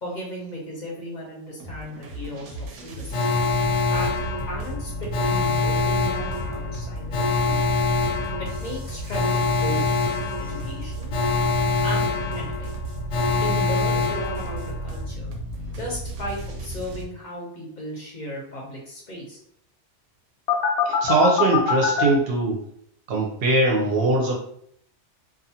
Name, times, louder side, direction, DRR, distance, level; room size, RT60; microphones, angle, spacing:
voice 1, 0.0-3.2 3.9-4.1 4.5-7.8 8.4-9.9 10.4-11.1 11.8-12.8 13.3-15.3 15.7-19.4, equal, 45° left, -4 dB, 0.7 m, -36 dB
sound 1, 1.6-17.1, equal, 90° right, 0.9 m, -34 dB
Alarm, 3.1-15.0 20.5-22.0, left 4 dB, 75° left, 0.8 m, -25 dB
voice 2, 21.0-22.6 23.1-24.3, right 2 dB, 60° right, -1 dB, 0.7 m, -21 dB
2.5 x 2.3 x 2.7 m, 0.68 s
omnidirectional pair, 1.2 m